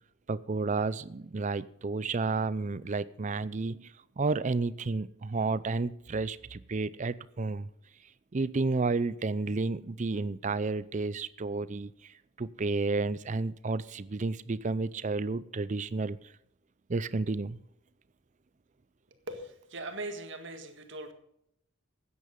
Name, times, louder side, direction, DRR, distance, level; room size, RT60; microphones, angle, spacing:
voice 1, 0.3-7.7 8.3-16.2 16.9-17.6, right 3 dB, 35° right, 17 dB, 0.5 m, -31 dB
voice 2, 19.3-21.1, right 2 dB, 60° right, 6 dB, 1.9 m, -40 dB
14.0 x 9.7 x 5.2 m, 0.75 s
head